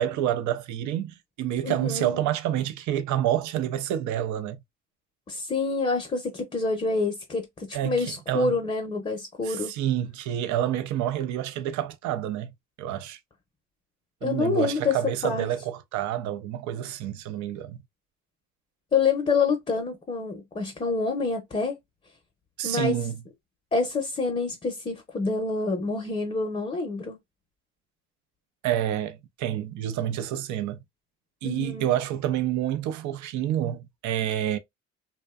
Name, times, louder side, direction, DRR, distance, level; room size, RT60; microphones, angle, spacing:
voice 1, 0.0-4.6 7.7-8.6 9.4-12.5 12.8-13.2 14.2-17.8 22.6-23.2 28.6-30.8 31.4-34.6, right 11 dB, 75° right, 0.5 m, -28 dB
voice 2, 1.6-2.1 5.3-9.7 14.2-15.0 15.2-15.5 18.9-21.8 22.6-23.0 23.7-27.2 31.4-31.9, left 4 dB, 20° left, 0.6 m, -27 dB
2.5 x 2.1 x 2.3 m
cardioid pair, 85°, 30 cm